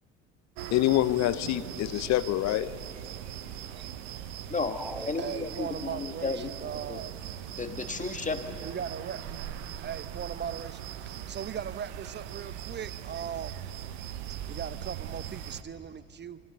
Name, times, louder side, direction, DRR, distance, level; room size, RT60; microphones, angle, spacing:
sound 1, 0.6-15.6, right 10 dB, 65° right, 1.1 m, -40 dB
voice 1, 0.7-2.7, left 14 dB, 45° left, 0.9 m, -26 dB
voice 2, 3.6-3.9 4.4-4.5 5.2-7.1 8.6-9.2 9.8-10.8 11.3-13.6 14.5-16.4, right 8 dB, 30° right, 0.9 m, -38 dB
sound 2, 4.6-6.1, equal, ahead, 0.6 m, -44 dB
voice 3, 5.0-6.5 6.9-7.0 7.6-8.6, left 4 dB, 20° left, 1.5 m, -33 dB
26.5 x 23.5 x 6.9 m
figure-of-eight pair, 60°, 38 cm